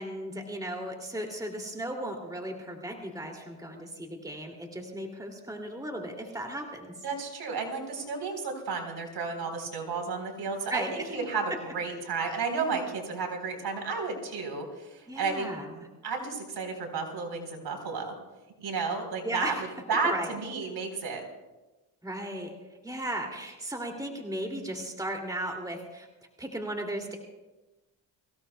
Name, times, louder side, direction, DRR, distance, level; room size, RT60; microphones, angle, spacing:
voice 1, 0.0-6.9 10.7-11.2 11.5-11.6 15.1-15.9 19.2-19.7 20.0-20.3 22.0-22.5 22.8-26.1 26.4-27.2, right 1 dB, 10° right, 2 dB, 2.5 m, -36 dB
voice 2, 7.0-15.5 16.0-18.1 18.6-19.5 19.9-21.2, right 4 dB, 55° right, 3 dB, 3.9 m, -32 dB
24.0 x 16.5 x 2.3 m, 1.1 s
supercardioid pair, 80°, 46 cm